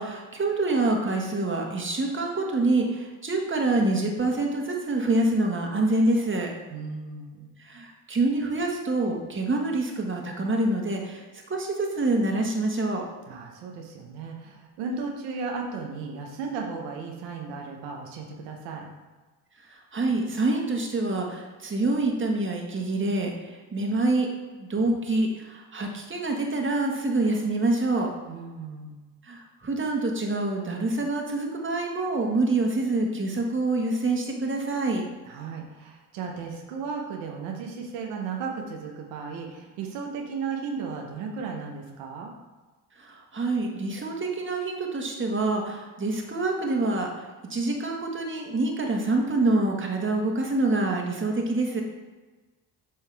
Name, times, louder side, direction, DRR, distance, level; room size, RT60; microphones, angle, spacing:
voice 1, 0.0-6.5 7.6-13.1 19.6-24.3 24.6-28.1 29.2-35.0 43.0-47.2 47.5-51.8, right 2 dB, 30° right, 1 dB, 1.5 m, -26 dB
voice 2, 6.7-7.5 13.3-18.9 28.3-29.0 35.3-42.3, right 5 dB, 85° right, 1 dB, 0.9 m, -35 dB
7.5 x 4.7 x 3.4 m, 1.3 s
supercardioid pair, 60°, 42 cm